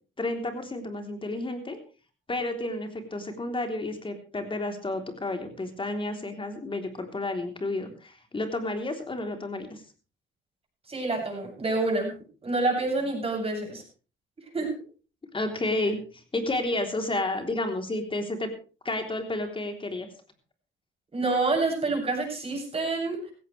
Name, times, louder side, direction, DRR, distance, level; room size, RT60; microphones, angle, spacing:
voice 1, 0.2-1.8 2.3-9.8 15.3-18.5 18.9-20.1, left 2 dB, 25° left, 5 dB, 3.5 m, -31 dB
voice 2, 10.9-12.1 12.4-13.8 14.5-14.7 21.1-23.3, right 3 dB, 30° right, 0 dB, 7.6 m, -27 dB
16.5 x 15.5 x 3.3 m, 0.36 s
cardioid pair, 90°, 20 cm